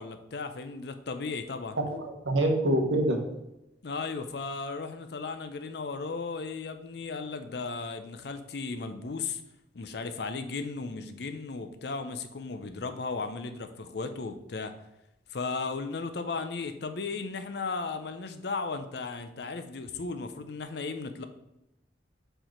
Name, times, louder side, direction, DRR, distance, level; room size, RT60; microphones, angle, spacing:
voice 1, 0.0-1.8 3.8-9.4 9.7-14.7 15.3-21.2, left 4 dB, 60° left, 8 dB, 0.5 m, -35 dB
voice 2, 1.8-3.2, right 1 dB, 90° right, 2 dB, 1.2 m, -26 dB
4.5 x 4.5 x 5.1 m, 0.89 s
head